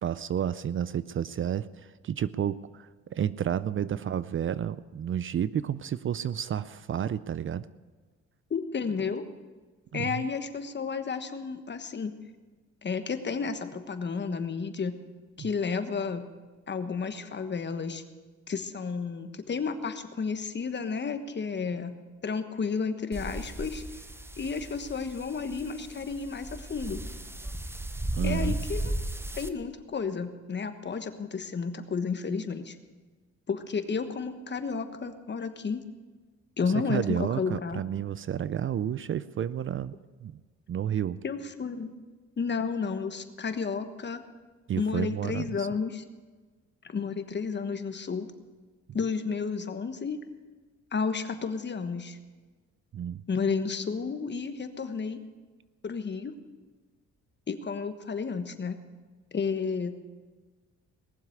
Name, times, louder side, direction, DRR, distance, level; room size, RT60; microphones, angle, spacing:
voice 1, 0.0-7.7 9.9-10.3 15.4-15.5 28.1-28.6 36.7-39.9 40.2-40.4 40.7-41.2 44.7-45.7 52.9-53.2, right 9 dB, 45° right, 17 dB, 0.5 m, -31 dB
voice 2, 8.5-9.2 9.9-12.1 12.8-15.0 15.4-16.3 16.7-18.0 18.5-22.0 22.2-23.8 24.4-27.0 28.2-28.9 29.4-32.8 33.5-35.8 36.6-37.8 41.2-41.9 42.4-44.2 44.7-46.0 46.8-48.3 48.9-50.2 50.9-52.2 53.3-55.2 55.8-56.4 57.5-58.8 59.3-60.0, left 5 dB, 35° left, 9 dB, 1.3 m, -32 dB
sound 1, 23.1-29.5, right 1 dB, 10° right, 0.9 m, -35 dB
18.5 x 7.4 x 9.4 m, 1.4 s
cardioid pair, 90°, 30 cm